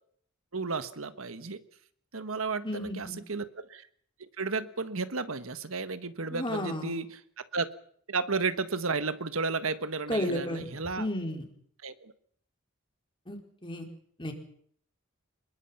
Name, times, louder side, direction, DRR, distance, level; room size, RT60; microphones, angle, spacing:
voice 1, 0.5-1.6 2.1-3.9 4.4-7.7 8.1-11.1 11.8-12.1, right 4 dB, 70° right, 11 dB, 1.5 m, -33 dB
voice 2, 2.6-3.2 6.3-7.0 10.1-10.6 11.0-11.4 13.3-13.9 14.2-14.3, left 1 dB, 25° left, 3 dB, 4.4 m, -33 dB
26.0 x 22.0 x 5.7 m, 0.62 s
head